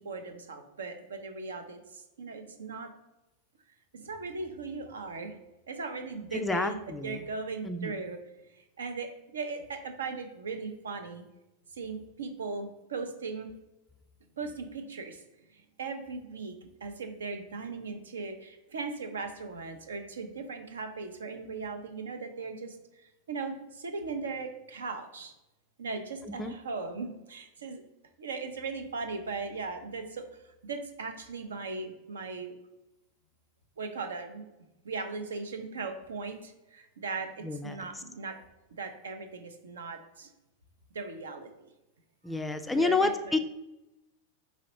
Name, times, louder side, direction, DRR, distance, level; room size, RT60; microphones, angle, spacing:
voice 1, 0.0-2.9 3.9-5.4 5.7-8.2 8.5-11.2 11.7-13.5 14.4-15.2 15.5-22.8 23.3-25.3 25.8-27.8 28.2-32.5 33.8-34.5 34.8-38.4 38.7-40.3 40.9-41.5 42.8-43.4, right 4 dB, 65° right, 6 dB, 0.5 m, -38 dB
voice 2, 6.3-7.2 7.6-7.9 26.2-26.5 37.4-38.0 42.2-43.4, left 3 dB, 10° left, 8 dB, 0.3 m, -30 dB
4.9 x 3.1 x 2.9 m, 0.97 s
figure-of-eight pair, 90°, 0 cm